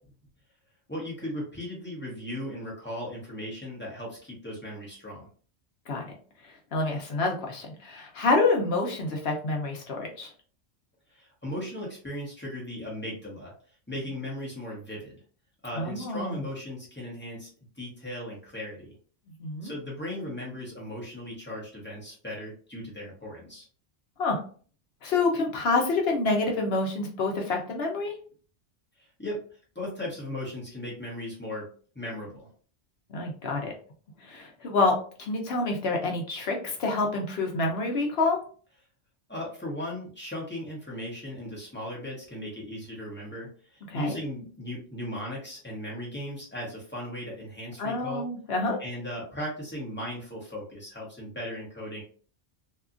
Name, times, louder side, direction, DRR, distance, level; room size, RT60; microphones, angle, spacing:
voice 1, 0.9-5.3 11.1-13.5 13.9-15.2 15.6-17.5 17.8-18.9 19.6-23.7 29.0-29.4 29.7-31.7 31.9-32.5 39.3-48.2 48.8-52.0, left 1 dB, 10° left, -5 dB, 1.0 m, -37 dB
voice 2, 6.7-10.3 15.8-16.4 19.4-19.7 24.2-24.4 25.0-28.1 33.1-33.7 34.2-38.4 43.9-44.2 47.8-48.8, left 3 dB, 65° left, 1 dB, 0.9 m, -27 dB
2.8 x 2.3 x 2.4 m, 0.42 s
omnidirectional pair, 1.2 m